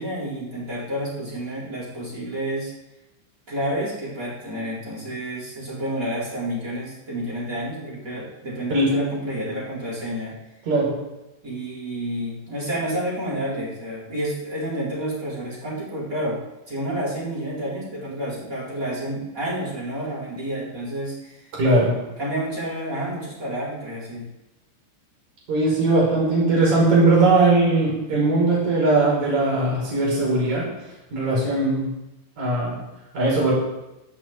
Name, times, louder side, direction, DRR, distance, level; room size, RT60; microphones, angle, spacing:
voice 1, 0.0-2.7 3.5-10.4 11.4-16.4 16.7-21.4 22.2-24.3, right 1 dB, 15° right, -7 dB, 4.4 m, -29 dB
voice 2, 21.6-22.0 25.5-30.7 31.1-31.9 32.4-32.8 33.1-33.5, right 2 dB, 35° right, -4 dB, 6.4 m, -19 dB
17.0 x 12.0 x 3.8 m, 0.94 s
omnidirectional pair, 5.9 m